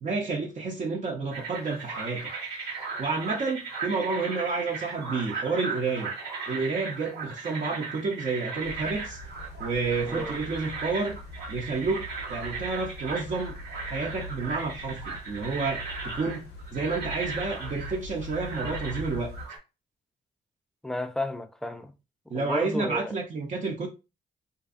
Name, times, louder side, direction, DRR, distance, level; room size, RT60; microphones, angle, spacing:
voice 1, 0.0-2.3 3.0-6.1 6.5-9.2 9.6-11.2 11.5-13.5 13.9-19.3 22.3-23.9, right 4 dB, 45° right, 0.6 m, -30 dB
sound 1, 1.3-19.6, right 4 dB, 85° right, 1.5 m, -37 dB
sound 2, 8.6-19.5, left 1 dB, 80° left, 0.5 m, -42 dB
voice 2, 10.1-10.4 20.8-21.9 22.3-23.2, left 1 dB, 5° left, 0.4 m, -32 dB
2.5 x 2.2 x 2.5 m
supercardioid pair, 65°, 17 cm